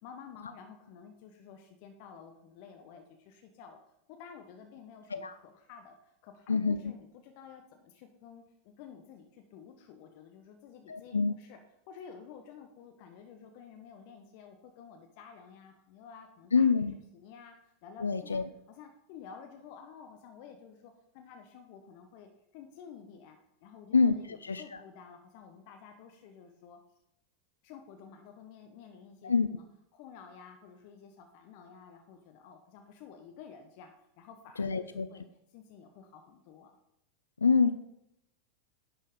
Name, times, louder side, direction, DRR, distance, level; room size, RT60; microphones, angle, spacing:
voice 1, 0.0-3.8 4.1-11.6 11.9-16.7 17.1-26.8 27.6-29.6 29.9-35.2 35.5-36.8, left 7 dB, 55° left, 5 dB, 1.0 m, -51 dB
voice 2, 10.9-11.3 16.5-16.9 18.0-18.4 23.9-24.1 24.4-24.6 29.2-29.5 34.6-35.1 37.4-37.7, left 5 dB, 85° left, 11 dB, 0.4 m, -26 dB
10.5 x 4.5 x 5.1 m, 0.79 s
figure-of-eight pair, 90°, 0 cm